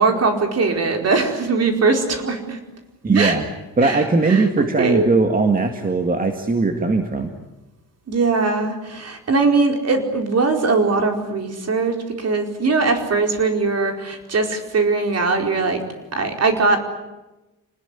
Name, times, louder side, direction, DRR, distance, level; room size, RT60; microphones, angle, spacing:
voice 1, 0.0-2.6 3.1-3.3 3.8-5.1 8.1-15.8 16.1-16.8, right 4 dB, 45° right, 4 dB, 4.6 m, -20 dB
voice 2, 3.0-3.4 3.8-7.3, right 3 dB, 25° right, 5 dB, 2.0 m, -19 dB
27.5 x 20.0 x 10.0 m, 1.0 s
wide cardioid pair, 145°, 35 cm